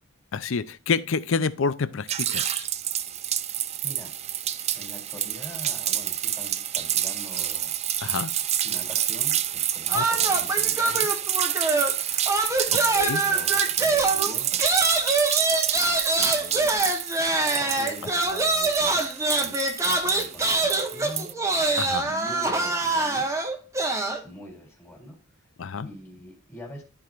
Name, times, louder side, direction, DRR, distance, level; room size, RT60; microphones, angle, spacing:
voice 1, 0.3-2.7 8.0-8.3 9.9-10.0 12.7-13.2 21.8-22.1 25.6-25.9, left 5 dB, 65° left, 0.5 m, -28 dB
sound 1, 2.1-21.3, right 11 dB, 30° right, 0.4 m, -28 dB
voice 2, 3.8-4.1 4.7-7.7 8.6-11.1 12.5-14.6 15.7-15.8 16.1-16.7 17.5-21.3 22.0-23.3 24.2-25.2 25.8-26.8, left 1 dB, 10° left, 3.3 m, -43 dB
sound 2, 9.9-12.0 12.3-24.2, right 2 dB, 15° right, 1.0 m, -25 dB
14.0 x 4.8 x 2.5 m
head